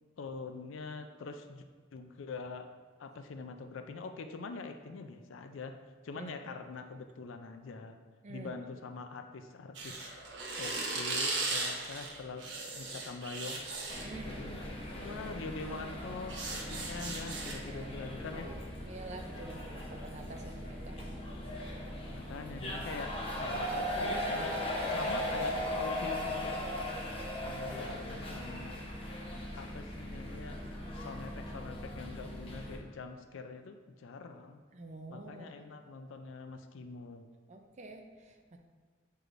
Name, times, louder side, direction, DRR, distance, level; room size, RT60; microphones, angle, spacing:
voice 1, 0.2-1.6 1.9-2.7 3.0-5.8 6.0-8.0 8.3-13.6 14.2-18.5 22.1-24.5 24.9-26.6 27.4-28.8 29.5-30.6 31.0-34.6 35.1-37.3, left 4 dB, 75° left, 7 dB, 0.4 m, -44 dB
sound 1, 9.7-14.1 15.1-15.3 15.7-17.5, right 3 dB, 60° right, 1.1 m, -37 dB
sound 2, 13.9-32.8, left 1 dB, 25° left, 0.8 m, -38 dB
voice 2, 14.0-14.3 17.7-18.1 18.8-21.0 25.0-25.1 34.7-35.5 37.5-38.6, right 2 dB, 35° right, 3 dB, 0.5 m, -47 dB
7.9 x 4.7 x 2.5 m, 1.5 s
head